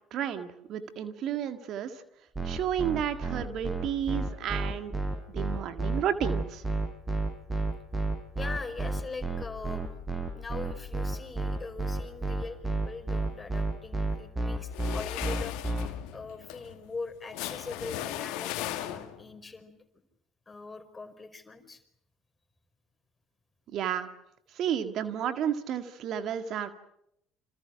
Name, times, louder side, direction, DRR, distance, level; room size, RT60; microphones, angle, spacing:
voice 1, 0.1-1.9 2.4-4.9 5.3-6.6 23.7-24.1 24.6-26.7, right 9 dB, 55° right, 9 dB, 1.9 m, -32 dB
sound 1, 2.3-15.9, right 2 dB, 15° right, 6.7 m, -30 dB
voice 2, 8.3-9.9 10.3-15.6 16.1-19.7 20.5-21.8, left 3 dB, 25° left, 7 dB, 5.0 m, -41 dB
sound 2, 14.7-19.3, left 13 dB, 65° left, 2.4 m, -37 dB
29.0 x 27.5 x 6.1 m, 0.78 s
figure-of-eight pair, 55°, 0 cm